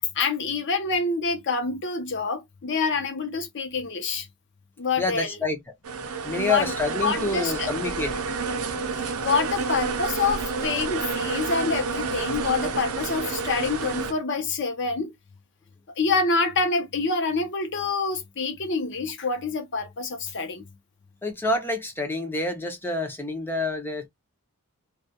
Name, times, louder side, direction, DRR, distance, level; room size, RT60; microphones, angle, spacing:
voice 1, 0.1-4.3 4.8-5.4 6.3-6.7 7.0-7.7 9.0-15.1 16.0-20.7, left 4 dB, 55° left, 0.6 m, -26 dB
voice 2, 5.0-5.6 6.2-8.1 21.2-24.1, left 2 dB, 10° left, 0.5 m, -27 dB
sound 1, 5.8-14.1, right 4 dB, 75° right, 0.5 m, -29 dB
2.3 x 2.2 x 2.6 m
head